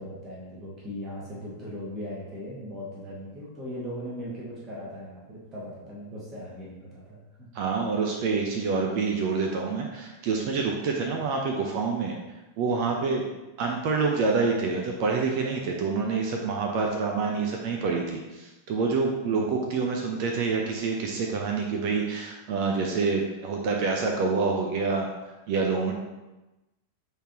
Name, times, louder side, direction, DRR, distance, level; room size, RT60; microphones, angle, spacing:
voice 1, 0.0-7.5 19.2-19.6, equal, 30° right, -7 dB, 1.9 m, -39 dB
voice 2, 7.5-12.1 12.6-13.3 13.6-25.1 25.5-25.9, right 4 dB, 45° right, 1 dB, 0.8 m, -27 dB
8.2 x 3.8 x 3.0 m, 1.0 s
figure-of-eight pair, 90°, 0 cm